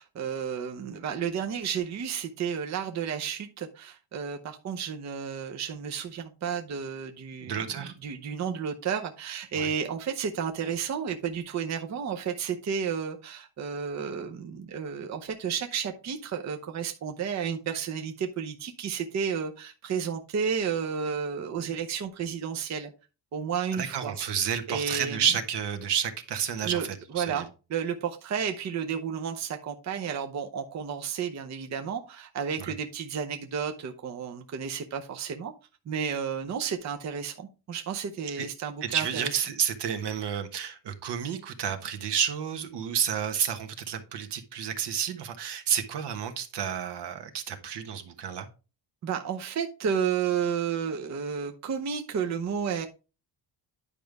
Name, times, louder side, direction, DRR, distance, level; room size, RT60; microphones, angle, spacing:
voice 1, 0.0-22.9 23.3-24.1 24.7-25.2 26.6-26.9 27.1-27.4 27.7-35.5 35.9-39.4 49.0-52.9, right 7 dB, 40° right, 5 dB, 0.8 m, -32 dB
voice 2, 7.4-7.9 9.6-9.7 23.7-27.4 32.6-32.7 38.4-38.5 38.8-48.5, right 8 dB, 70° right, 6 dB, 1.4 m, -30 dB
10.0 x 5.3 x 3.4 m, 0.32 s
cardioid pair, 145°, 43 cm